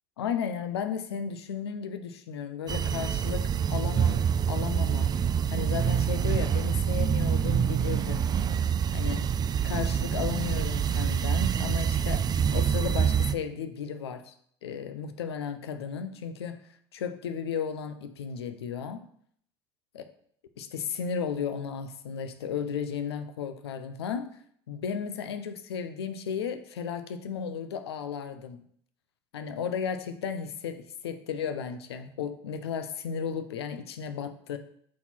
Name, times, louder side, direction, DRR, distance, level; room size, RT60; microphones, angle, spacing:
voice 1, 0.2-5.1 5.5-8.3 8.9-9.2 9.6-12.3 12.5-14.3 14.6-16.6 16.9-19.1 19.9-20.0 20.6-24.4 24.7-28.6 29.3-34.6, left 7 dB, 85° left, 9 dB, 0.6 m, -34 dB
sound 1, 2.7-13.3, right 8 dB, 30° right, 0.4 m, -26 dB
6.2 x 4.1 x 4.3 m, 0.64 s
hypercardioid pair, 75°, 13 cm